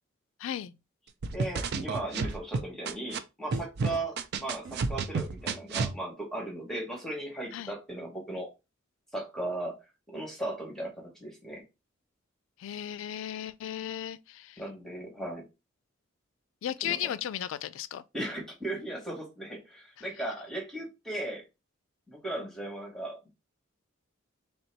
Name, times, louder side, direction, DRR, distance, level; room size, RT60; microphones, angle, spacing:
voice 1, 0.4-0.7 7.5-7.7 12.6-14.6 16.6-18.0, left 10 dB, 70° left, 0.3 m, -35 dB
sound 1, 1.2-3.2 3.5-5.9, right 4 dB, 55° right, 0.4 m, -31 dB
voice 2, 1.3-8.5 9.1-9.8 10.1-11.6 14.6-15.4 16.8-17.0 18.1-21.4 22.1-23.3, right 1 dB, 5° left, 1.0 m, -37 dB
3.3 x 2.8 x 4.3 m
head